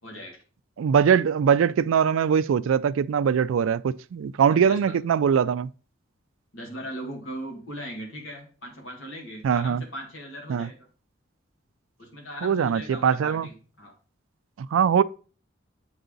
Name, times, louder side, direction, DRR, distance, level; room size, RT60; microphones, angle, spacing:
voice 1, 0.0-0.4 4.5-5.0 6.5-10.9 12.0-13.9, equal, 85° left, 2.1 m, -39 dB
voice 2, 0.8-5.7 9.4-9.8 10.5-10.7 12.4-13.5 14.6-15.0, right 7 dB, 85° right, 0.3 m, -22 dB
8.1 x 4.7 x 3.9 m
head